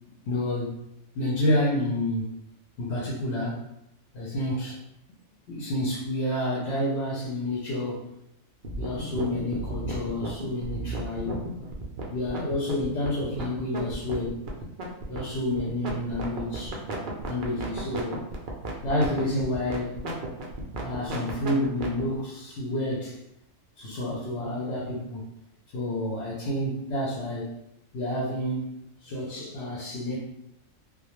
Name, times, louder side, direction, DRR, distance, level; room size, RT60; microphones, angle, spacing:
voice 1, 0.3-0.7 1.2-2.3 2.8-3.6 4.1-4.8 5.5-8.1 8.8-11.4 12.1-14.4 15.1-16.8 17.3-18.3 18.8-20.0 20.8-23.2 23.8-25.3 25.7-27.5 27.9-28.7 29.0-30.2, left 1 dB, 65° left, -5 dB, 0.8 m, -29 dB
sound 1, 8.6-22.0, right 2 dB, 60° right, 0.5 m, -34 dB
2.2 x 2.2 x 2.9 m, 0.81 s
omnidirectional pair, 1.4 m